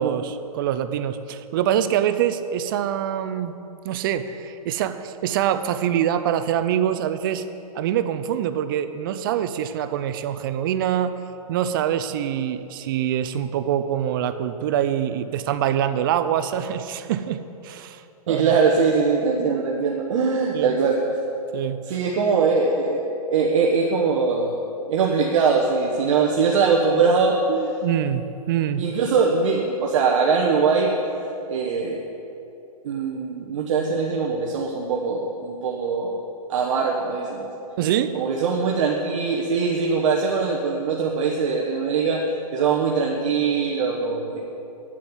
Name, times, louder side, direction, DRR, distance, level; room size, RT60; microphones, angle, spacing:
voice 1, 0.0-3.6 3.8-7.4 7.7-11.1 11.5-18.6 20.5-20.7 21.5-22.0 27.8-28.8 37.8-38.2, right 10 dB, 35° right, 10 dB, 0.4 m, -25 dB
voice 2, 18.3-21.0 21.9-24.5 24.9-27.7 28.8-31.0 31.5-32.0 32.8-36.2 36.5-37.5 38.1-42.3 42.5-44.4, right 5 dB, 55° right, -1 dB, 1.1 m, -22 dB
9.7 x 7.5 x 7.1 m, 2.8 s
hypercardioid pair, 150°, 20 cm